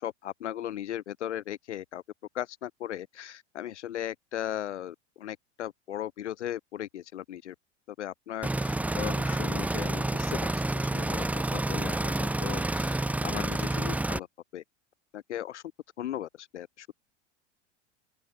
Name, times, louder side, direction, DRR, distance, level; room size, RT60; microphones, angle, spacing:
voice 1, 0.0-2.0 2.3-7.5 8.0-14.3 14.5-14.6 15.1-15.6 16.0-16.9, left 11 dB, 80° left, 1.1 m, -37 dB
sound 1, 8.4-14.2, right 2 dB, 5° right, 0.7 m, -29 dB
open air
hypercardioid pair, 85°, 35 cm